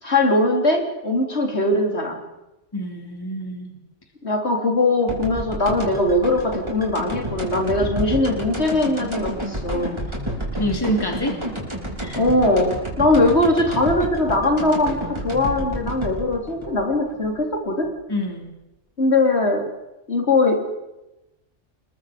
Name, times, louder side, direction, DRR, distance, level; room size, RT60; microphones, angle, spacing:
voice 1, 0.0-2.2 4.2-10.1 12.1-17.9 19.0-19.7 20.1-20.7, left 2 dB, 60° left, 2 dB, 3.9 m, -20 dB
voice 2, 2.7-3.8 10.5-11.4 12.0-12.2 12.9-13.0 18.1-18.5, equal, 20° left, 2 dB, 3.1 m, -27 dB
sound 1, 5.1-17.9, right 1 dB, 20° right, 4.9 m, -30 dB
29.5 x 21.5 x 5.1 m, 0.95 s
omnidirectional pair, 1.3 m